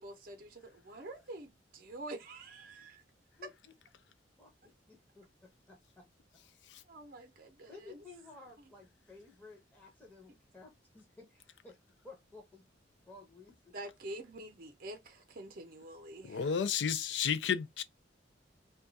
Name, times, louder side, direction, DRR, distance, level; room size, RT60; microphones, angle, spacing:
voice 1, 0.0-3.0 6.9-8.0 13.7-16.6, right 1 dB, 50° right, 0.6 m, -47 dB
voice 2, 3.4-3.7 4.4-6.1 7.7-11.8 12.0-12.7 13.1-13.7, left 3 dB, 10° left, 0.7 m, -55 dB
voice 3, 16.2-17.8, left 7 dB, 65° left, 0.4 m, -32 dB
2.3 x 2.3 x 3.9 m
head